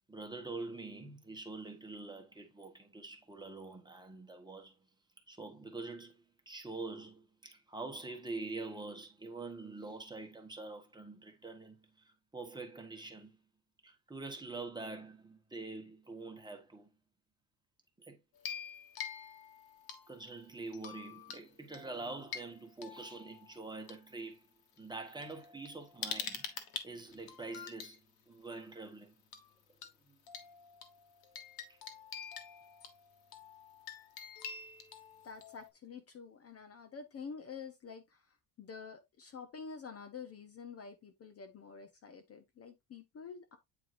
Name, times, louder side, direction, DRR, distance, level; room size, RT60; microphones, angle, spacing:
voice 1, 0.1-4.8 5.3-13.3 13.8-16.9 18.0-18.2 20.1-24.5 24.8-29.1 30.1-30.2 31.7-31.8, right 3 dB, 10° right, 1.1 m, -45 dB
sound 1, 18.3-20.3 20.7-21.4 21.7-23.9 24.8-24.9 25.2-28.0 29.3-29.5 29.8-29.9 30.3-35.7, left 7 dB, 55° left, 1.4 m, -46 dB
voice 2, 35.2-43.6, left 5 dB, 30° left, 0.7 m, -48 dB
8.7 x 4.6 x 2.5 m
cardioid pair, 160°, 45 cm